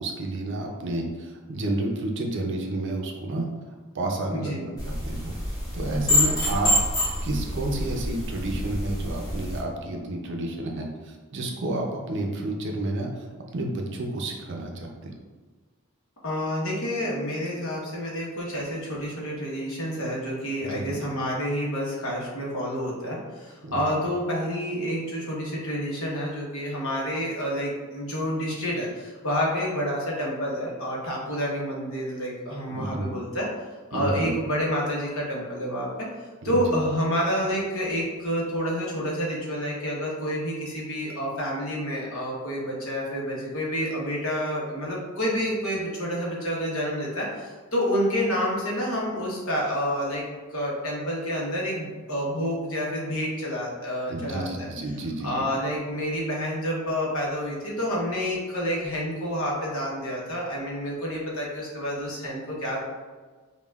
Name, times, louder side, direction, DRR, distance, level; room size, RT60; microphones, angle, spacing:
voice 1, 0.0-3.5 3.9-5.3 5.7-6.7 7.2-15.1 20.6-21.0 23.6-23.8 32.7-33.1 33.9-34.3 36.5-36.8 54.1-55.5, right 2 dB, 55° right, 1 dB, 0.6 m, -30 dB
voice 2, 4.3-4.7 16.2-33.5 33.9-36.1 36.4-50.2 50.5-54.7 55.2-62.8, equal, 65° left, -3 dB, 1.0 m, -29 dB
sound 1, 4.8-9.6, left 1 dB, 15° left, 1.1 m, -27 dB
5.4 x 2.3 x 2.3 m, 1.4 s
head